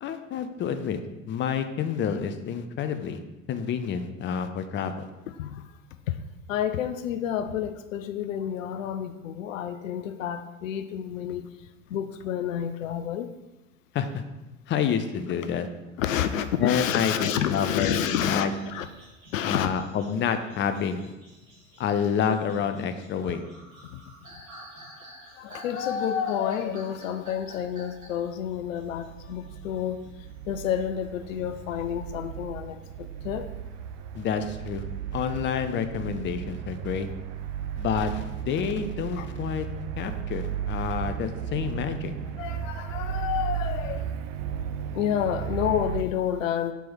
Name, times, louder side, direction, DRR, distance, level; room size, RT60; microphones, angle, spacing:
voice 1, 0.0-1.0 1.3-3.2 3.5-5.0 13.9-14.2 14.7-15.7 16.6-18.5 19.4-21.0 21.8-23.4 34.1-34.8 35.1-37.1 37.8-39.7 40.0-42.1, left 7 dB, 30° left, 9 dB, 0.6 m, -28 dB
voice 2, 6.5-11.5 11.9-13.3 16.0-18.9 19.3-19.7 23.9-24.0 25.4-30.0 30.5-32.8 33.2-33.5 39.2-39.3 42.4-44.1 44.9-46.7, left 9 dB, 75° left, 10 dB, 0.5 m, -29 dB
sound 1, 18.5-30.1 30.5-31.8, right 1 dB, 85° right, 2.0 m, -50 dB
sound 2, 27.4-46.0, right 9 dB, 40° right, 0.4 m, -35 dB
4.6 x 4.5 x 5.5 m, 1.1 s
figure-of-eight pair, 70°, 40 cm